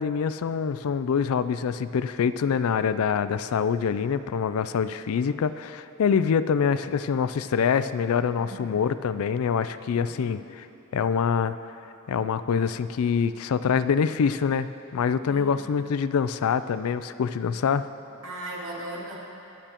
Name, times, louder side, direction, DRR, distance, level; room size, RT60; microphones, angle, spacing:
voice 1, 0.0-10.7 10.9-11.6 12.1-14.7 14.9-17.9, left 6 dB, 70° left, 13 dB, 0.4 m, -25 dB
voice 2, 8.4-8.8 9.9-10.3 15.3-15.5 18.2-19.2, right 1 dB, 65° right, -5 dB, 2.4 m, -38 dB
23.0 x 8.9 x 3.0 m, 2.9 s
head